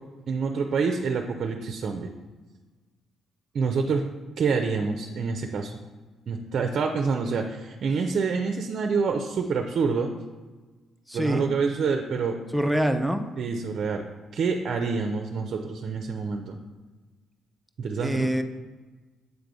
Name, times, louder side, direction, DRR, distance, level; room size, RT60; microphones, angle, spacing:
voice 1, 0.3-2.1 3.5-4.1 4.4-5.7 6.3-10.1 11.1-12.4 13.4-14.0 14.3-16.6 17.8-18.3, right 5 dB, 60° right, 4 dB, 0.5 m, -27 dB
voice 2, 11.1-11.5 12.5-13.3 18.0-18.4, right 1 dB, ahead, 6 dB, 0.5 m, -25 dB
8.0 x 3.4 x 3.9 m, 1.3 s
cardioid pair, 90°, 0 cm